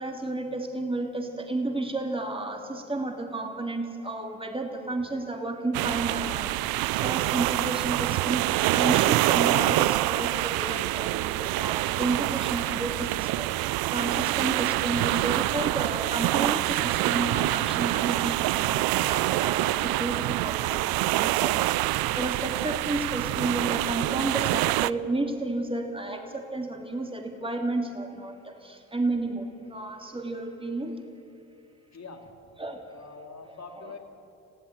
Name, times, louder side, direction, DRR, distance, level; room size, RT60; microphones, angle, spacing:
voice 1, 0.0-31.0 32.6-32.8 33.7-34.0, right 2 dB, 15° right, 3 dB, 3.1 m, -32 dB
sound 1, 5.7-24.9, right 18 dB, 65° right, 0.6 m, -26 dB
voice 2, 31.9-32.3 32.9-34.0, left 4 dB, 45° left, 3 dB, 3.4 m, -44 dB
21.0 x 15.5 x 9.4 m, 2.7 s
hypercardioid pair, 50°, 39 cm